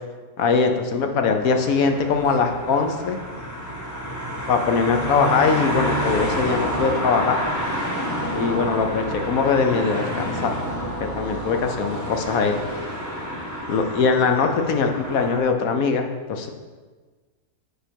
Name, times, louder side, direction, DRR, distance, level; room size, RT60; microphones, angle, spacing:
voice 1, 0.4-3.2 4.5-7.4 8.3-10.5 11.1-12.6 13.7-16.5, left 5 dB, 65° left, 5 dB, 1.1 m, -21 dB
sound 1, 1.4-15.4, equal, 10° left, 1.1 m, -29 dB
9.5 x 5.2 x 4.5 m, 1.4 s
omnidirectional pair, 1.7 m